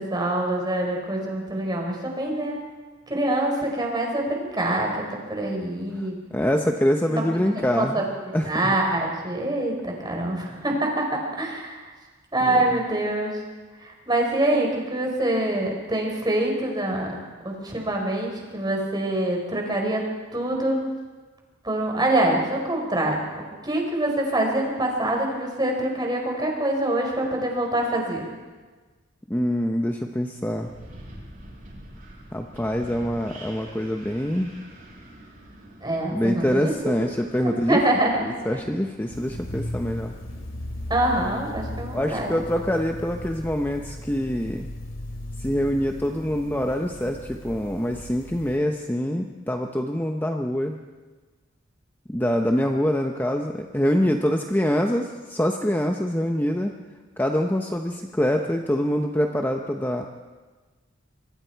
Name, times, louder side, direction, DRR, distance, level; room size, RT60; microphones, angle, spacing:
voice 1, 0.0-2.5 3.1-6.1 7.1-8.1 8.4-11.9 12.3-13.4 13.8-17.1 17.4-20.0 20.3-20.8 21.6-28.3 35.8-36.9 37.4-38.3 40.9-42.3, right 1 dB, 20° right, 1 dB, 4.6 m, -25 dB
voice 2, 6.0-8.0 8.3-8.7 12.4-12.5 29.3-30.7 32.3-34.5 36.1-37.8 38.2-40.1 41.9-44.7 45.4-50.8 52.1-56.7 57.2-60.1, equal, 10° left, 3 dB, 0.9 m, -25 dB
Wind, 30.5-41.5, right 1 dB, 45° right, 7.8 m, -46 dB
sound 1, 39.1-48.6, left 1 dB, 90° left, 2.7 m, -37 dB
26.0 x 23.0 x 4.6 m, 1.3 s
head